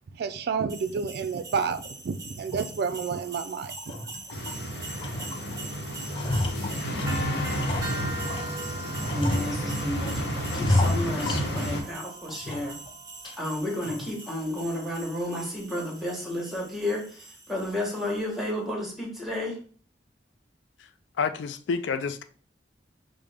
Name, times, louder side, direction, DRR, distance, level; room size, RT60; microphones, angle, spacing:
voice 1, 0.1-3.7, right 5 dB, 60° right, 0.3 m, -30 dB
sound 1, 0.7-18.4, right 2 dB, 20° right, 0.6 m, -42 dB
sound 2, 2.5-2.7 3.1-3.3 3.7-4.6 5.0-5.6 5.9-8.5 9.0-10.0 10.5-11.9 12.3-12.9 13.2-13.3 13.9-14.2, left 2 dB, 30° left, 0.4 m, -30 dB
sound 3, 4.3-11.8, equal, 70° left, 0.9 m, -31 dB
voice 2, 9.1-12.7 13.4-19.6, left 1 dB, ahead, 1.0 m, -32 dB
voice 3, 21.2-22.2, left 5 dB, 90° left, 0.4 m, -28 dB
4.9 x 2.1 x 3.3 m
head